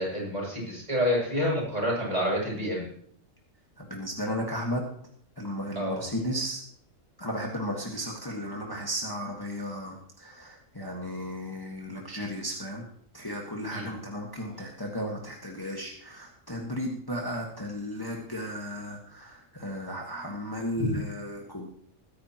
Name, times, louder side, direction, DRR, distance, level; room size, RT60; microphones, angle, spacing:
voice 1, 0.0-2.8 5.7-6.0 13.7-13.9 20.8-20.9, equal, 30° right, -4 dB, 6.9 m, -28 dB
voice 2, 3.8-4.8 5.4-6.6 7.2-12.9 13.1-21.7, equal, 15° left, -1 dB, 1.7 m, -34 dB
21.5 x 10.0 x 3.0 m, 0.64 s
omnidirectional pair, 1.3 m